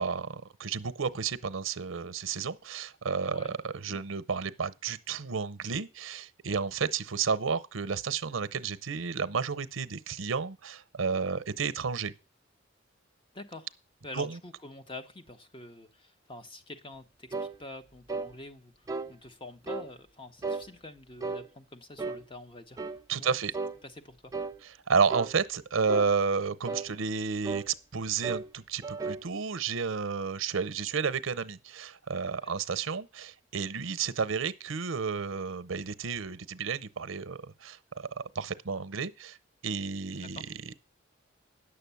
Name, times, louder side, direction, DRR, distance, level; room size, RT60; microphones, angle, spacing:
voice 1, 0.0-12.1 14.1-14.4 23.1-23.5 24.9-39.4 39.6-40.7, right 5 dB, 85° right, 0.8 m, -31 dB
voice 2, 13.3-13.7 14.0-22.8 23.1-23.3 23.8-24.3 32.4-32.5 40.4-40.6, left 2 dB, 25° left, 1.0 m, -46 dB
sound 1, 17.3-17.6 18.1-18.3 18.9-19.1 19.7-19.9 20.4-20.7 21.2-21.5 22.0-22.2 22.8-23.0 23.5-23.8 24.3-24.6 25.1-25.3 25.9-26.1 26.6-26.9 27.4-27.7 28.2-28.5 28.8-29.3, right 4 dB, 15° right, 0.5 m, -34 dB
9.9 x 6.9 x 7.0 m
head